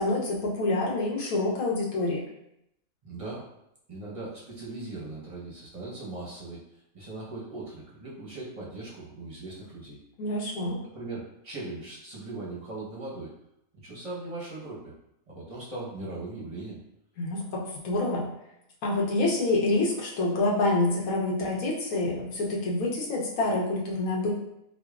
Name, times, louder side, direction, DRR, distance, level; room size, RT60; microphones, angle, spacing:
voice 1, 0.0-2.2 10.2-10.8 17.2-18.3 18.8-24.3, left 2 dB, 70° left, -3 dB, 1.2 m, -27 dB
voice 2, 3.0-3.5 3.9-6.6 6.9-10.0 10.9-13.3 13.8-14.9 15.3-16.8, right 2 dB, 30° right, -7 dB, 0.7 m, -39 dB
4.8 x 2.2 x 2.4 m, 0.81 s
omnidirectional pair, 1.6 m